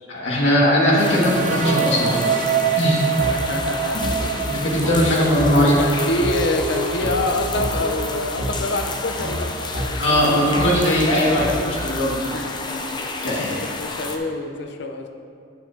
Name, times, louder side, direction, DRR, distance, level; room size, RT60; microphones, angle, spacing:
voice 1, 0.1-2.4 2.8-3.0 4.4-5.7 10.0-12.2 13.2-13.5, equal, 85° left, -6 dB, 2.0 m, -19 dB
sound 1, 1.0-14.2, left 3 dB, 25° left, 0.6 m, -31 dB
sound 2, 1.1-8.8, right 6 dB, 45° right, 0.3 m, -26 dB
voice 2, 3.2-4.3 5.4-11.7 12.3-12.7 13.3-15.1, left 2 dB, 65° left, 5 dB, 0.7 m, -27 dB
sound 3, 3.2-3.3 4.0-4.2 4.8-5.0 5.4-5.5 6.2-6.3 7.0-7.1 7.6-7.7 8.4-8.5 9.2-9.3 9.7-9.9 10.6-10.7 11.4-11.5, equal, 70° right, 1.7 m, -27 dB
9.2 x 8.1 x 2.8 m, 2.3 s
head